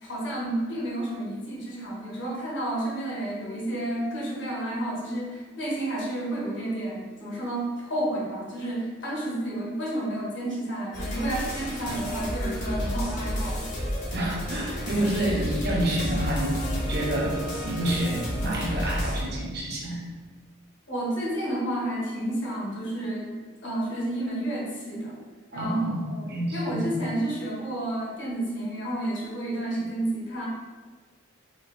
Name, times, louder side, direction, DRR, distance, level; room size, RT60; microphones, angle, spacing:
voice 1, 0.0-13.7 17.8-17.9 20.9-23.4 23.6-25.2 25.5-25.8 26.1-30.5, right 1 dB, 65° left, -5 dB, 1.5 m, -31 dB
sound 1, 10.9-19.2, equal, 40° left, 1.0 m, -31 dB
voice 2, 14.1-20.0 25.5-27.0, right 1 dB, 50° right, -3 dB, 0.9 m, -28 dB
4.4 x 2.8 x 3.3 m, 1.5 s
head